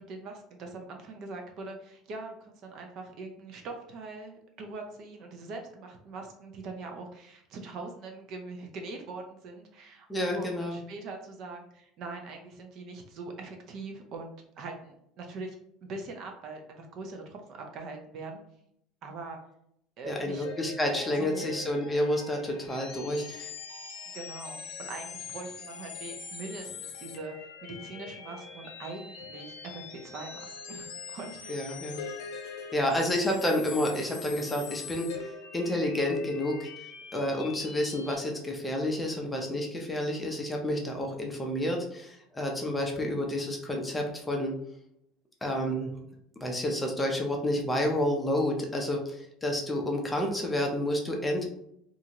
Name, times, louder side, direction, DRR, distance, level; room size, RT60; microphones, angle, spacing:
voice 1, 0.0-15.6 15.8-18.4 19.0-19.4 20.0-20.5 20.9-21.5 24.1-31.8, right 3 dB, 50° right, 3 dB, 0.5 m, -42 dB
voice 2, 10.1-10.8 20.0-23.5 31.5-32.0 32.7-35.1 35.5-36.7 37.1-44.5 45.4-45.9 46.4-49.0 49.4-51.5, left 1 dB, 10° left, 1 dB, 0.5 m, -29 dB
sound 1, 20.3-38.2, left 6 dB, 70° left, 0.6 m, -43 dB
2.6 x 2.4 x 2.9 m, 0.74 s
cardioid pair, 140°, 0 cm